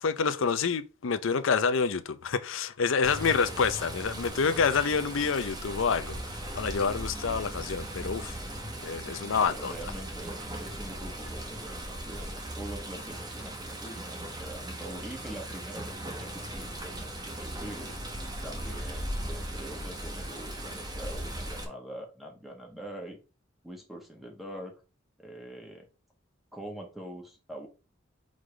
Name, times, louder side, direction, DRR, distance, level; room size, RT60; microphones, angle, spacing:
voice 1, 0.0-6.2 6.5-8.3 8.8-9.7, left 5 dB, 75° left, 0.6 m, -27 dB
Water, 3.0-21.6, right 1 dB, 20° right, 1.3 m, -38 dB
voice 2, 9.2-17.9 18.4-23.2 23.6-24.7 25.2-25.9 26.5-27.7, right 1 dB, ahead, 1.4 m, -44 dB
4.9 x 3.9 x 4.9 m
head